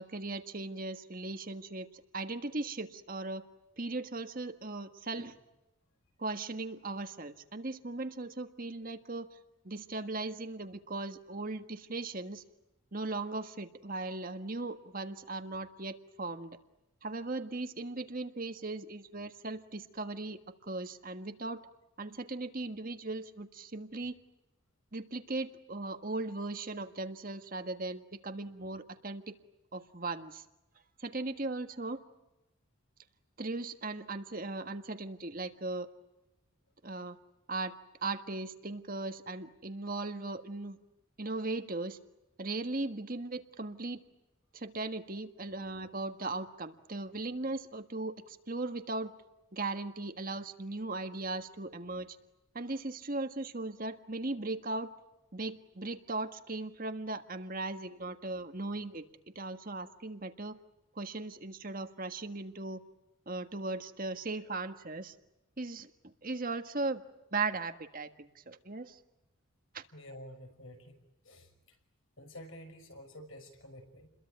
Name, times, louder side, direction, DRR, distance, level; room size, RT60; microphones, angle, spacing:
voice 1, 0.0-3.4 3.8-5.4 6.2-9.4 9.6-12.4 12.9-16.6 17.0-21.6 22.0-24.2 24.9-29.3 29.7-30.4 31.0-32.0 33.4-35.9 36.8-37.2 37.5-37.7 38.0-40.8 41.2-42.0 42.4-44.0 44.5-49.1 49.5-52.2 52.5-54.9 55.3-59.1 59.3-60.6 60.9-62.8 63.2-65.1 65.6-67.0 67.3-69.0 69.7-69.8, right 2 dB, 40° right, 8 dB, 1.6 m, -38 dB
voice 2, 69.9-71.0 71.2-71.8 72.2-74.1, equal, 70° left, 6 dB, 5.9 m, -50 dB
30.0 x 22.5 x 9.0 m, 0.95 s
head